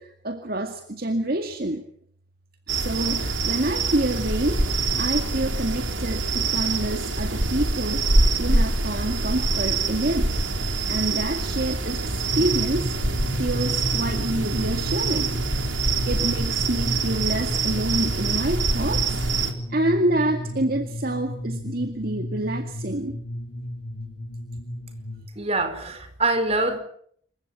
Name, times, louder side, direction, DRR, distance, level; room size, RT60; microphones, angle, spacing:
voice 1, 0.0-1.8 2.7-10.3 10.9-12.9 13.3-15.4 16.1-19.2 19.7-23.2, right 1 dB, 50° right, 5 dB, 2.1 m, -27 dB
sound 1, 2.7-19.5, right 3 dB, 85° right, 3.5 m, -25 dB
sound 2, 12.2-25.2, equal, 70° left, 3.5 m, -33 dB
voice 2, 25.4-26.8, right 2 dB, 35° right, 8 dB, 4.6 m, -24 dB
28.0 x 16.0 x 8.7 m, 0.63 s
head